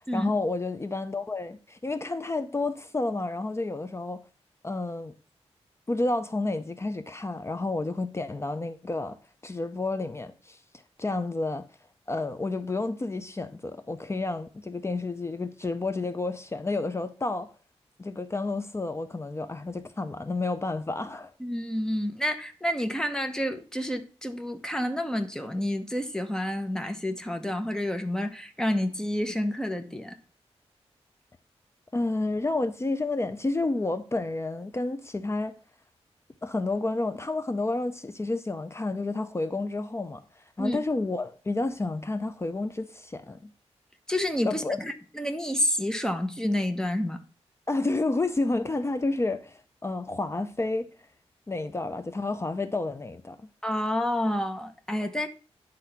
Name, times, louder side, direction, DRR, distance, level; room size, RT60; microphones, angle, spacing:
voice 1, 0.1-4.2 4.6-5.1 5.9-9.2 9.4-10.6 11.0-11.7 12.1-17.5 18.0-21.3 31.9-35.5 36.4-40.2 40.6-43.5 44.4-44.8 47.7-50.9 51.5-53.4, left 2 dB, 25° left, 0.5 m, -30 dB
voice 2, 21.4-30.1 40.6-40.8 44.1-47.2 53.6-55.3, left 1 dB, 5° left, 1.0 m, -29 dB
10.0 x 3.9 x 5.8 m
wide cardioid pair, 115°, 11 cm